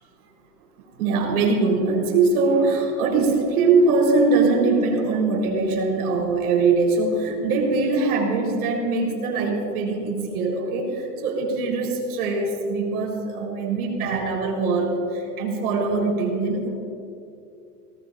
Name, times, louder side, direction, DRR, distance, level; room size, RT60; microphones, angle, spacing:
voice 1, 1.0-16.7, right 3 dB, 60° right, 0 dB, 4.3 m, -22 dB
23.0 x 18.5 x 2.6 m, 2.5 s
supercardioid pair, 160°, 48 cm